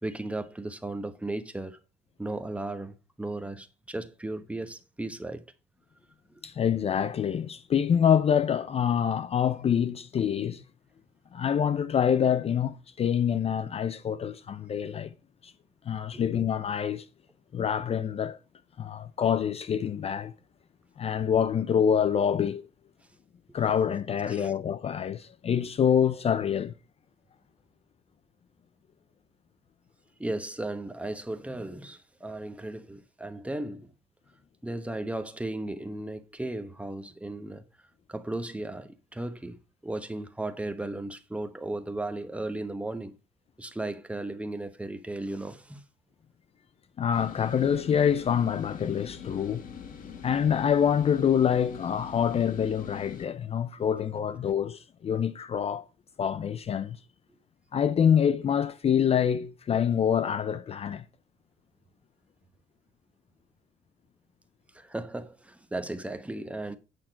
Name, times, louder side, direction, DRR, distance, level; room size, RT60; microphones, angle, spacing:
voice 1, 0.0-1.8 2.2-5.4 6.3-6.4 16.1-16.2 24.3-24.5 30.2-33.9 34.6-37.6 38.1-39.6 39.8-43.1 43.6-45.8 64.7-66.8, right 2 dB, 5° right, 1.1 m, -35 dB
voice 2, 6.4-10.6 11.3-15.1 15.4-15.5 15.9-17.1 17.5-18.4 18.8-20.3 21.0-22.7 23.5-26.7 47.0-49.6 50.2-55.9 56.2-57.0 57.7-61.0, left 8 dB, 35° left, 0.5 m, -26 dB
sound 1, 47.1-53.3, left 7 dB, 55° left, 1.7 m, -43 dB
9.1 x 5.8 x 4.5 m
cardioid pair, 110°, 17 cm